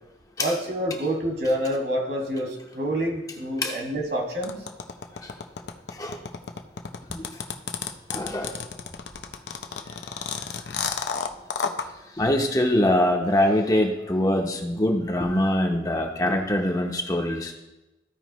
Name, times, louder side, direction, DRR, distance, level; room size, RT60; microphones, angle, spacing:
voice 1, 0.4-4.6, equal, 60° right, 0 dB, 1.9 m, -27 dB
sound 1, 4.4-11.9, left 6 dB, 75° left, 0.6 m, -31 dB
voice 2, 8.1-8.6 12.2-17.5, left 1 dB, 20° left, 3 dB, 0.7 m, -23 dB
14.5 x 5.0 x 3.0 m, 1.0 s
head